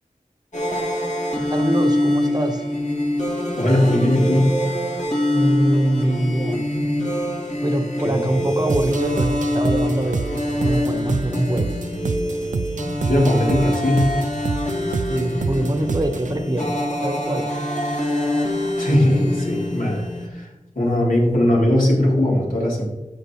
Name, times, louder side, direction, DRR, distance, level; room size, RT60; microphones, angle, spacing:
sound 1, 0.5-20.3, left 1 dB, 55° left, 2.7 m, -25 dB
voice 1, 1.5-2.6 5.3-6.7 7.6-11.8 15.1-17.5, right 1 dB, 30° right, 6 dB, 1.3 m, -24 dB
voice 2, 3.6-4.6 8.0-8.4 13.0-14.1 18.8-20.5 20.8-22.9, left 1 dB, 70° left, -5 dB, 3.6 m, -19 dB
sound 2, 8.7-16.4, right 4 dB, 60° right, 0.4 m, -28 dB
13.0 x 7.6 x 3.2 m, 1.0 s
wide cardioid pair, 50°, 14 cm